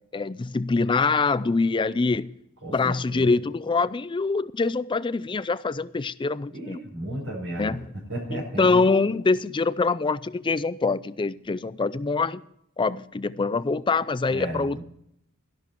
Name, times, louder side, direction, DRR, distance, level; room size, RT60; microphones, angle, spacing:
voice 1, 0.1-2.3 2.7-6.8 7.6-7.9 8.3-12.4 12.8-14.8, left 4 dB, 20° left, 0.4 m, -24 dB
voice 2, 2.6-3.3 6.5-7.8 8.1-8.9 14.3-14.8, right 1 dB, 65° right, 5.0 m, -34 dB
13.0 x 11.5 x 4.5 m
head